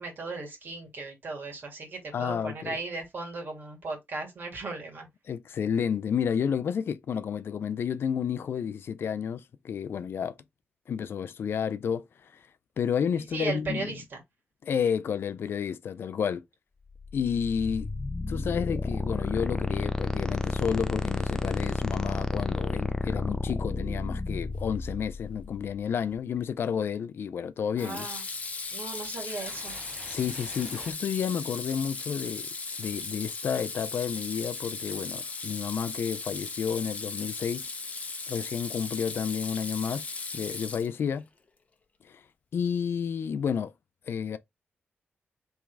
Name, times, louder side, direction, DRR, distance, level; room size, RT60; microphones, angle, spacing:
voice 1, 0.0-5.1 13.3-14.2 27.8-28.2 28.7-29.8, right 3 dB, 55° right, 2.0 m, -36 dB
voice 2, 2.1-2.8 5.3-10.3 10.9-12.1 12.3-12.4 12.8-13.9 14.6-16.4 17.1-17.9 18.3-28.1 30.1-32.5 32.8-37.7 38.3-41.3 42.0-42.2 42.5-43.7 44.1-44.4, left 7 dB, 65° left, 0.4 m, -31 dB
sound 1, 16.9-25.8, left 2 dB, 15° left, 0.4 m, -31 dB
Water tap faucet / Sink (filling or washing), 26.1-26.5 27.8-41.2, left 4 dB, 35° left, 0.8 m, -37 dB
sound 2, 28.1-30.9, right 2 dB, 25° right, 1.1 m, -49 dB
3.6 x 3.1 x 4.6 m
wide cardioid pair, 135°, 4 cm